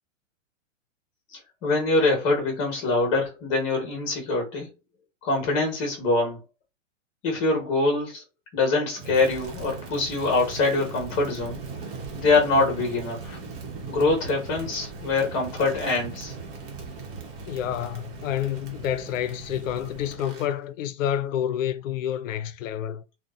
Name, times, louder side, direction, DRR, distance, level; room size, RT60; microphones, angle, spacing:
voice 1, 1.3-4.7 5.2-6.4 7.2-8.2 8.5-11.6 12.1-13.4 13.9-16.3, left 3 dB, 35° left, 1.1 m, -24 dB
Crackle, 8.9-20.5, right 4 dB, 45° right, 0.9 m, -39 dB
voice 2, 17.5-23.0, left 10 dB, 85° left, 0.5 m, -29 dB
2.7 x 2.1 x 2.3 m
hypercardioid pair, 145°, 38 cm